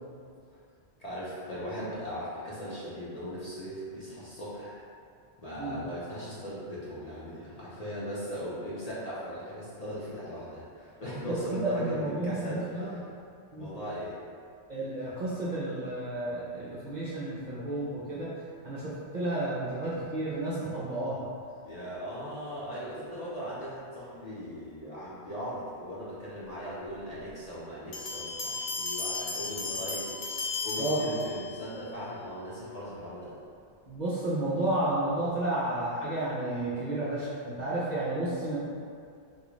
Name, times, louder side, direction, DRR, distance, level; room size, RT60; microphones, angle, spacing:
voice 1, 1.0-4.8 5.4-13.1 13.6-14.2 21.6-33.4, equal, 40° left, -9 dB, 0.7 m, -39 dB
voice 2, 11.3-12.9 13.5-13.7 14.7-18.3 18.6-21.3 30.8-31.0 33.9-38.6, right 1 dB, 50° right, -8 dB, 0.6 m, -31 dB
Bell, 27.9-31.7, left 4 dB, 90° left, 0.9 m, -35 dB
3.6 x 2.4 x 3.0 m, 2.4 s
omnidirectional pair, 1.2 m